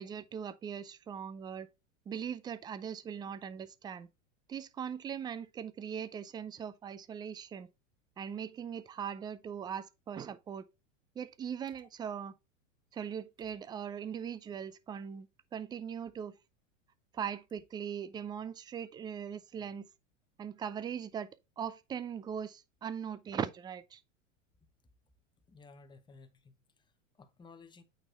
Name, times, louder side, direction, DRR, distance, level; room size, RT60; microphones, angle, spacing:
voice 1, 0.0-1.7 2.1-4.1 4.5-7.7 8.2-10.7 11.2-12.3 12.9-16.4 17.1-19.9 20.4-21.3 21.6-24.0, right 8 dB, 10° right, 0.3 m, -40 dB
voice 2, 25.5-27.8, left 4 dB, 10° left, 0.9 m, -56 dB
8.8 x 4.3 x 3.4 m
hypercardioid pair, 100°, 38 cm